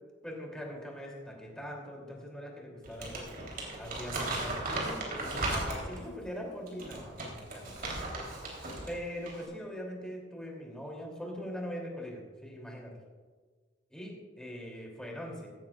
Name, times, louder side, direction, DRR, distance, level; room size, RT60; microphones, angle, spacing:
voice 1, 0.2-3.3 3.8-8.1 8.9-12.9 13.9-15.5, equal, 5° left, -2 dB, 3.1 m, -42 dB
Crumpling crinkling, 2.8-6.1 6.7-8.9 9.2-9.4, right 2 dB, 55° right, 3.5 m, -36 dB
16.5 x 13.5 x 2.5 m, 1.5 s
head